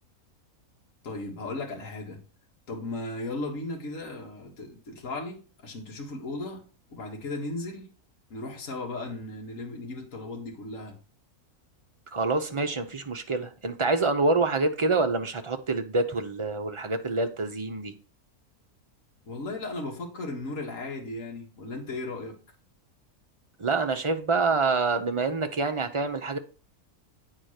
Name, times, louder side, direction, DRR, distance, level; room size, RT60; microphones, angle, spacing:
voice 1, 1.0-2.2 2.7-6.6 6.9-7.9 8.3-11.0 19.2-22.4, left 2 dB, 60° left, 2.0 m, -36 dB
voice 2, 12.1-17.9 23.6-26.4, right 3 dB, 35° right, 0.5 m, -26 dB
9.0 x 3.7 x 6.5 m
omnidirectional pair, 1.6 m